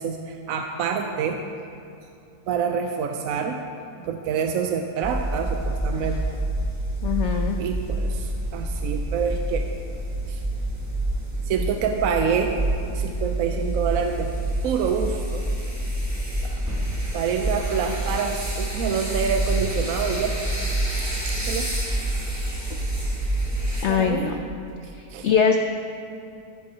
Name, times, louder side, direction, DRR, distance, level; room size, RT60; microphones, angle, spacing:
voice 1, 0.0-1.4 2.5-3.6 4.0-6.2 7.6-9.7 10.3-10.4 11.5-12.6 12.9-14.3 14.6-15.4 16.4-16.6 17.1-20.4 21.3-21.7 22.7-22.8 23.9-24.3 25.1-25.3, right 6 dB, 70° right, 4 dB, 0.9 m, -27 dB
sound 1, 5.0-23.8, right 1 dB, 10° right, 1.3 m, -27 dB
voice 2, 7.0-7.6 23.8-24.4 25.2-25.6, left 7 dB, 80° left, 5 dB, 0.6 m, -21 dB
16.5 x 8.0 x 2.8 m, 2.6 s
omnidirectional pair, 1.7 m